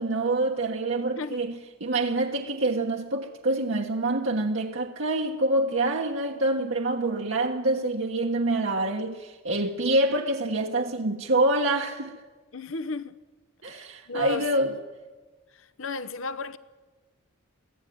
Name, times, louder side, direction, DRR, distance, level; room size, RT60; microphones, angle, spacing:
voice 1, 0.0-12.1 13.6-14.7, right 2 dB, 60° right, 1.2 m, -26 dB
voice 2, 12.5-13.1 13.6-14.7 15.5-16.6, left 3 dB, 65° left, 0.8 m, -34 dB
23.5 x 15.5 x 9.4 m
head